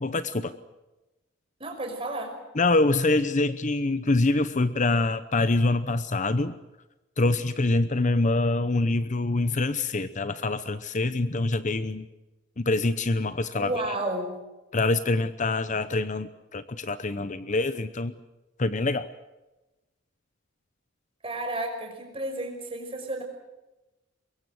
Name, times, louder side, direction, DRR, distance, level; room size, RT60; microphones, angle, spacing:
voice 1, 0.0-0.5 2.6-6.6 7.2-12.1 12.6-13.7 14.7-18.1 18.6-19.1, left 2 dB, 40° left, 13 dB, 0.8 m, -25 dB
voice 2, 1.6-2.4 13.5-14.4 21.2-23.2, right 1 dB, 25° right, 3 dB, 5.6 m, -32 dB
23.5 x 22.5 x 7.9 m, 1.1 s
head